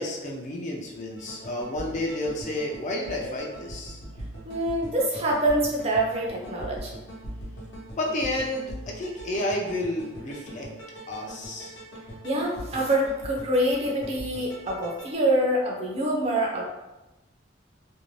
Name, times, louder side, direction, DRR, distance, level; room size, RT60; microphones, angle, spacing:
voice 1, 0.0-4.0 7.9-10.7 11.1-11.8, left 1 dB, 40° left, -2 dB, 0.5 m, -31 dB
sound 1, 1.2-15.1, right 1 dB, 80° left, 0.8 m, -42 dB
voice 2, 4.5-6.9 12.2-16.6, right 1 dB, 35° right, -2 dB, 0.5 m, -25 dB
2.6 x 2.1 x 3.1 m, 1.0 s
head